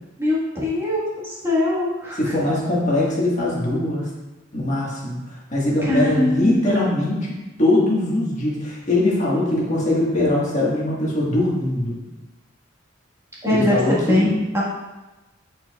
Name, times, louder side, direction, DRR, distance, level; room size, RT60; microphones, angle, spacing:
voice 1, 0.2-2.3 5.8-6.9 13.4-14.6, left 1 dB, 15° right, -7 dB, 1.5 m, -22 dB
voice 2, 2.2-4.1 4.5-12.0 13.5-14.3, left 1 dB, 35° left, -5 dB, 1.6 m, -21 dB
8.8 x 4.5 x 2.3 m, 1.1 s
head